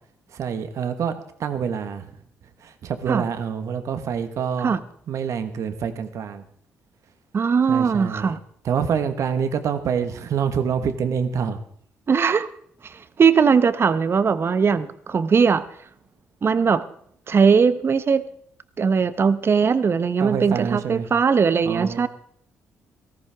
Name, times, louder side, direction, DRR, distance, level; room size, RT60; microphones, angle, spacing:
voice 1, 0.3-2.2 2.6-4.8 5.1-6.5 7.7-8.3 8.6-11.6 20.2-21.1 21.6-22.1, right 7 dB, 65° right, 9 dB, 1.5 m, -26 dB
voice 2, 7.3-8.4 12.1-12.5 12.8-15.6 16.4-16.8 17.3-18.3 18.8-22.1, right 6 dB, 45° right, 13 dB, 1.0 m, -19 dB
18.5 x 13.5 x 3.6 m, 0.62 s
supercardioid pair, 55°, 6 cm